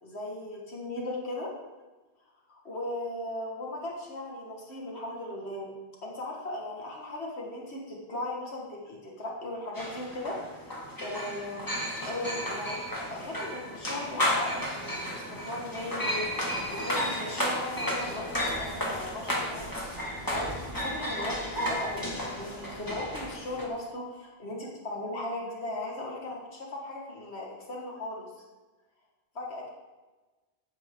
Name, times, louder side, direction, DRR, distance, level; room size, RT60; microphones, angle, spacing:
voice 1, 0.0-1.5 2.5-5.7 6.0-10.7 11.0-11.7 12.1-12.8 13.1-16.3 16.7-28.3 29.4-29.7, left 1 dB, 85° left, -2 dB, 2.0 m, -37 dB
sound 1, 9.8-23.6, equal, 20° left, 2.1 m, -33 dB
14.5 x 8.9 x 3.8 m, 1.2 s
omnidirectional pair, 1.1 m